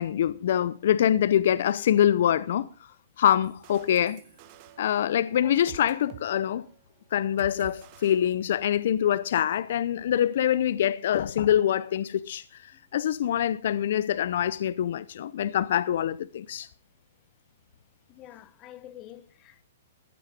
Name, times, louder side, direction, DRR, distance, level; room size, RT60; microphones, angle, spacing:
voice 1, 0.0-2.7 3.2-4.2 4.8-6.6 7.1-12.4 12.9-16.7, left 10 dB, 60° left, 0.7 m, -24 dB
sound 1, 3.4-6.3 6.5-6.8 7.4-8.9, right 11 dB, 40° right, 1.7 m, -49 dB
voice 2, 18.1-19.6, left 12 dB, 30° left, 1.2 m, -47 dB
15.5 x 11.5 x 5.2 m
hypercardioid pair, 150°, 0 cm